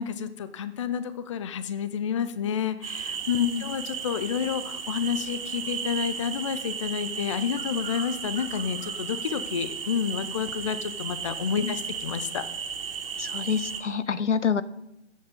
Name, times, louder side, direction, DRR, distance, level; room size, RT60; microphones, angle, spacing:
voice 1, 0.0-12.5, left 7 dB, 25° left, 14 dB, 0.5 m, -30 dB
sound 1, 2.8-13.8, right 6 dB, 50° right, 2.2 m, -35 dB
voice 2, 13.2-14.6, left 6 dB, 80° left, 17 dB, 0.8 m, -27 dB
13.0 x 8.1 x 5.3 m, 0.87 s
figure-of-eight pair, 130°, 36 cm